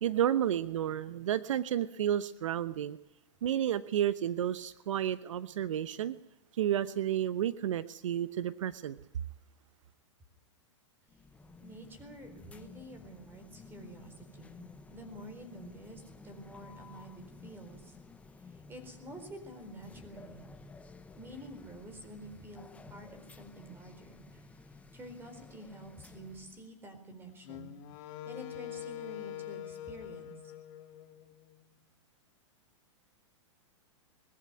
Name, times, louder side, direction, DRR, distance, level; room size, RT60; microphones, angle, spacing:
voice 1, 0.0-3.0 3.4-6.2 6.5-9.0, right 10 dB, 80° right, 15 dB, 0.9 m, -31 dB
sound 1, 11.1-26.7, left 3 dB, 10° left, 0.9 m, -53 dB
voice 2, 11.6-14.6 14.9-18.0 18.5-20.5 21.2-24.5 24.9-30.5, right 1 dB, 15° right, 8 dB, 4.2 m, -49 dB
Wind instrument woodwind instrument, 27.4-31.7, left 12 dB, 40° left, 2.0 m, -44 dB
20.5 x 14.0 x 9.6 m, 0.84 s
hypercardioid pair, 145°, 16 cm